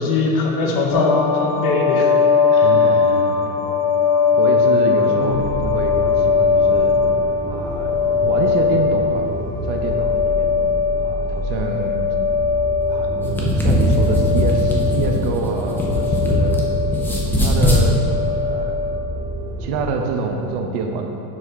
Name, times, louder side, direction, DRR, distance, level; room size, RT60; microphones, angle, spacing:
voice 1, 0.0-2.1 2.5-2.7 5.1-5.4, left 3 dB, 45° left, 0 dB, 1.1 m, -21 dB
sound 1, 0.9-19.0, left 5 dB, 70° left, 1.1 m, -20 dB
voice 2, 2.6-3.8 4.3-6.9 7.5-9.3 9.6-10.5 11.0-12.1 12.9-16.6 17.1-18.9 19.6-21.1, right 4 dB, 60° right, 3 dB, 0.9 m, -26 dB
sound 2, 5.1-19.8, right 1 dB, 10° right, 1.7 m, -29 dB
sound 3, 13.1-16.6 16.9-17.8, left 1 dB, 5° left, 0.5 m, -19 dB
7.3 x 4.2 x 5.6 m, 2.9 s
cardioid pair, 160°, 45 cm